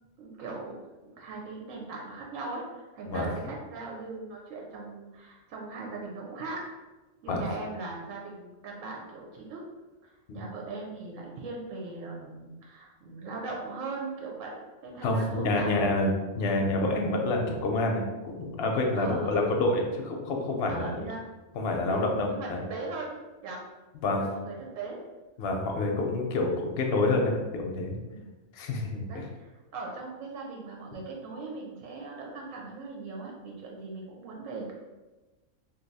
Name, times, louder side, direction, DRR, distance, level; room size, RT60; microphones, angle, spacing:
voice 1, 0.2-6.6 7.2-9.6 10.0-16.0 19.0-19.6 20.7-21.2 21.9-23.6 24.1-25.0 25.7-26.0 28.1-28.3 29.1-34.7, right 3 dB, 90° right, -1 dB, 1.0 m, -39 dB
voice 2, 15.0-18.0 18.4-21.1 21.5-22.6 24.0-24.2 25.4-28.0 28.5-29.2, left 2 dB, 65° left, 2 dB, 0.7 m, -28 dB
2.6 x 2.2 x 3.9 m, 1.1 s
omnidirectional pair, 1.3 m